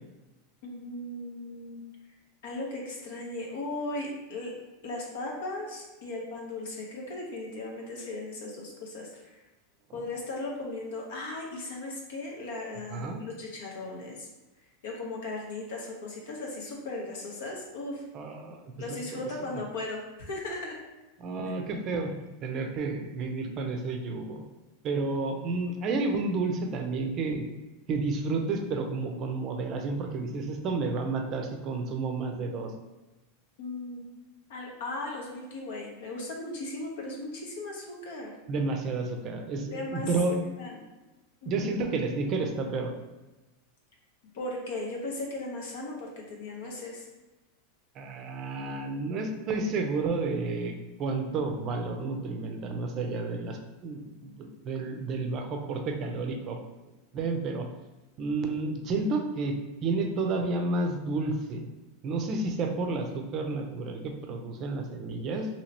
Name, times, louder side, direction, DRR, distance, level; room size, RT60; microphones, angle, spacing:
voice 1, 0.6-1.8 2.4-4.5 4.8-9.4 9.9-14.3 14.8-18.0 18.8-20.8 21.5-21.6 33.6-34.0 34.5-38.3 39.7-40.8 41.4-41.7 44.3-47.1, left 2 dB, 75° left, -1 dB, 0.9 m, -37 dB
voice 2, 12.9-13.2 18.1-19.3 21.2-22.1 22.4-24.4 24.8-27.4 27.9-32.7 38.5-40.4 41.5-42.9 48.0-50.7 51.0-56.6 57.1-57.7 58.2-61.7 62.0-65.5, right 3 dB, 40° right, 4 dB, 0.4 m, -31 dB
2.9 x 2.8 x 2.8 m, 1.1 s
supercardioid pair, 130°, 0 cm